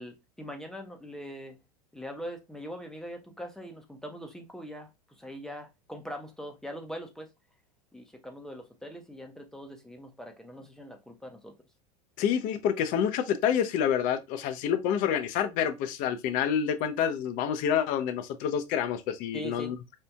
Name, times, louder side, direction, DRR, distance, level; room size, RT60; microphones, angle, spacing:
voice 1, 0.0-1.6 1.9-4.9 5.2-7.3 7.9-11.6 19.3-19.8, equal, 5° left, 0.7 m, -42 dB
voice 2, 12.2-19.8, left 8 dB, 40° left, 0.6 m, -28 dB
4.4 x 2.5 x 2.3 m
figure-of-eight pair, 85°, 20 cm